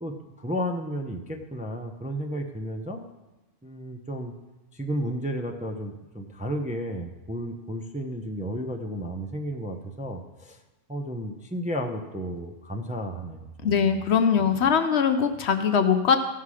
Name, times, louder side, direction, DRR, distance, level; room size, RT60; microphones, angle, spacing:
voice 1, 0.0-3.0 3.6-4.3 4.7-10.6 10.9-13.9 14.4-14.6, equal, 10° right, 3 dB, 0.5 m, -33 dB
voice 2, 13.6-16.2, left 6 dB, 65° left, 8 dB, 0.9 m, -21 dB
14.5 x 5.7 x 4.9 m, 1.1 s
omnidirectional pair, 1.3 m